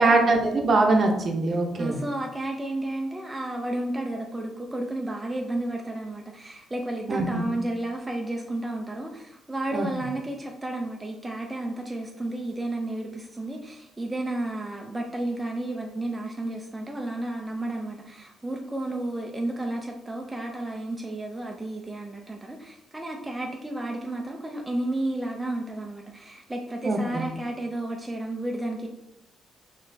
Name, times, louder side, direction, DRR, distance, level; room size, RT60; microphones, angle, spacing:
voice 1, 0.0-2.0 7.1-7.5 9.7-9.9 26.8-27.3, right 2 dB, 45° right, 2 dB, 0.7 m, -22 dB
voice 2, 1.8-28.9, right 1 dB, 15° right, 1 dB, 0.4 m, -32 dB
4.0 x 3.0 x 2.7 m, 0.85 s
cardioid pair, 90°, 0 cm